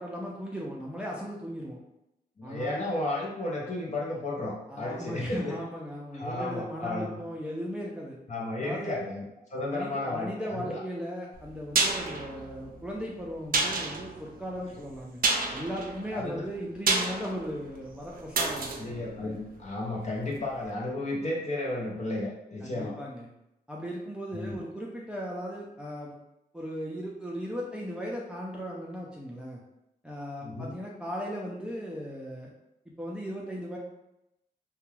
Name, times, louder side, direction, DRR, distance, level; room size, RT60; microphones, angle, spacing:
voice 1, 0.0-1.8 2.4-2.8 4.7-8.2 8.6-9.0 9.7-15.2 15.5-18.7 22.6-23.3 23.7-26.1 26.5-29.6 30.0-32.5 33.0-33.8, equal, 5° right, -4 dB, 0.5 m, -37 dB
voice 2, 2.4-5.6 6.1-7.2 8.3-9.2 9.5-10.8 16.1-16.4 18.8-22.9 24.3-24.6 30.4-30.7, left 2 dB, 45° left, -3 dB, 0.6 m, -33 dB
sound 1, 11.3-20.2 20.5-20.6, right 3 dB, 60° right, 0.5 m, -31 dB
2.3 x 2.2 x 3.1 m, 0.87 s
cardioid pair, 60°, 17 cm